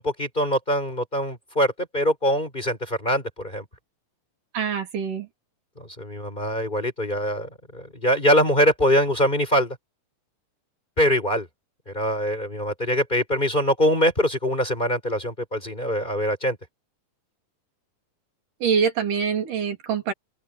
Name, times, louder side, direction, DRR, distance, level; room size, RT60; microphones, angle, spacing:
voice 1, 0.0-3.6 5.8-9.8 11.0-11.5 11.9-16.6, equal, 15° left, 4.5 m, -23 dB
voice 2, 4.5-5.3 18.6-20.1, right 6 dB, 85° right, 4.8 m, -24 dB
open air
omnidirectional pair, 3.6 m